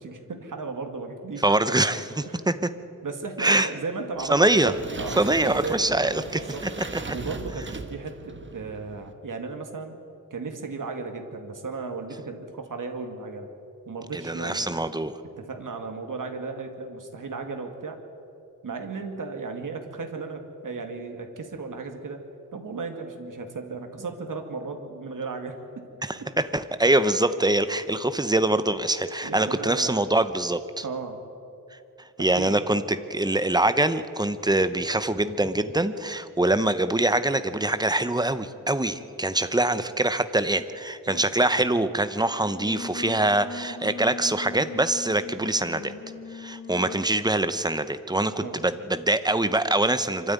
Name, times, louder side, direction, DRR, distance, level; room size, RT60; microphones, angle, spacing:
voice 1, 0.0-1.5 2.3-2.4 3.0-6.6 7.1-10.0 10.3-13.5 13.9-14.8 15.4-18.0 18.6-22.2 22.5-25.9 29.2-30.1 30.8-31.2 32.2-32.6 41.1-41.3 48.4-48.6, right 4 dB, 70° right, 4 dB, 2.2 m, -35 dB
voice 2, 1.4-2.7 3.4-3.7 4.3-4.7 5.2-6.7 7.1-7.2 14.1-15.2 26.0-30.8 32.2-45.9 46.3-50.3, right 2 dB, 10° right, 12 dB, 0.8 m, -24 dB
sound 1, 4.2-9.1, right 3 dB, 35° right, 1.3 m, -39 dB
Singing, 42.3-47.2, left 3 dB, 45° left, 1.6 m, -40 dB
25.0 x 13.0 x 9.4 m, 2.7 s
wide cardioid pair, 135°, 33 cm